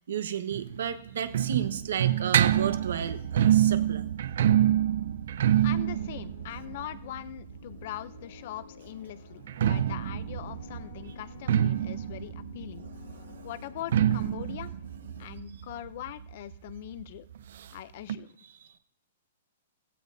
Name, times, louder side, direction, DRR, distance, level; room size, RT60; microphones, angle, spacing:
voice 1, 0.1-4.1 13.1-13.5 15.2-15.3, right 8 dB, 65° right, 10 dB, 1.2 m, -33 dB
sound 1, 0.5-8.2 9.3-16.7 17.0-17.1 17.3-17.4 18.1-18.2, right 10 dB, 50° right, 0.5 m, -27 dB
sound 2, 5.6-15.3, left 8 dB, 70° left, 5.5 m, -52 dB
voice 2, 5.6-12.9 13.4-14.7 15.2-17.3 17.7-18.4, left 13 dB, 40° left, 15 dB, 0.5 m, -41 dB
16.0 x 16.0 x 2.7 m, 0.62 s
hypercardioid pair, 180°, 0 cm